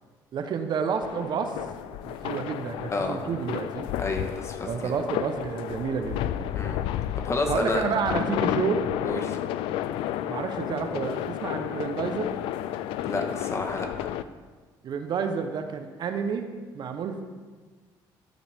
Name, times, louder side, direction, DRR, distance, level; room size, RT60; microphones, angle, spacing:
voice 1, 0.3-1.6 2.0-3.9 4.7-6.5 7.5-8.9 10.3-12.3 14.8-16.5 16.7-17.2, right 6 dB, 55° right, 6 dB, 1.0 m, -30 dB
sound 1, 1.0-14.2, left 11 dB, 85° left, 0.4 m, -32 dB
voice 2, 4.0-4.9 6.5-6.8 7.2-7.8 9.0-9.4 13.1-14.1, left 3 dB, 35° left, 4 dB, 1.5 m, -30 dB
13.5 x 7.7 x 3.6 m, 1.4 s
cardioid pair, 90°, 9 cm